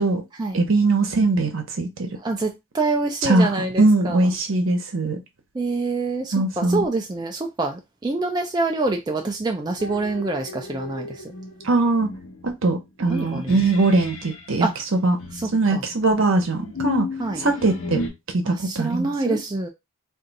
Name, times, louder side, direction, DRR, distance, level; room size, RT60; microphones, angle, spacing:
voice 1, 0.5-2.1 3.2-5.2 6.3-6.8 11.6-12.1 12.4-15.2 15.5-17.1 17.4-18.0 18.3-19.4, right 2 dB, 70° right, 0.8 m, -21 dB
voice 2, 2.2-4.3 5.5-11.1 13.1-13.5 14.6-14.7 15.4-15.8 17.2-17.4 18.4-19.7, right 3 dB, 20° right, 0.3 m, -26 dB
sound 1, 9.8-14.5 15.2-18.1, left 3 dB, 75° left, 0.9 m, -34 dB
2.6 x 2.4 x 3.9 m
head